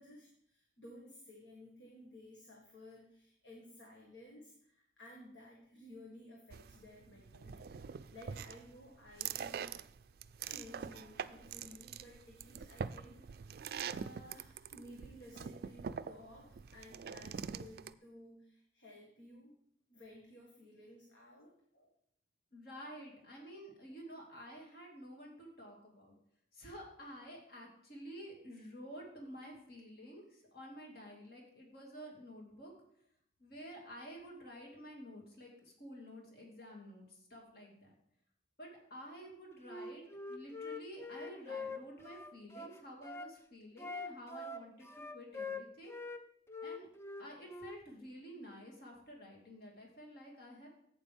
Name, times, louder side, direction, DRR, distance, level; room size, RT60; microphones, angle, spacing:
voice 1, 0.0-9.7 10.4-13.5 13.9-19.5 19.9-21.5, left 1 dB, 80° left, -1 dB, 1.8 m, -55 dB
sound 1, 6.5-17.9, right 7 dB, 55° right, 0.3 m, -44 dB
voice 2, 22.5-26.2 26.5-32.7 33.4-37.9 38.6-40.0 40.3-44.9 45.1-46.0 46.6-46.9 47.2-50.7, equal, 55° left, -1 dB, 2.3 m, -51 dB
Wind instrument woodwind instrument, 39.6-43.3 43.8-46.2 46.5-47.8, left 3 dB, 15° left, 0.4 m, -44 dB
11.5 x 8.6 x 3.5 m, 0.70 s
head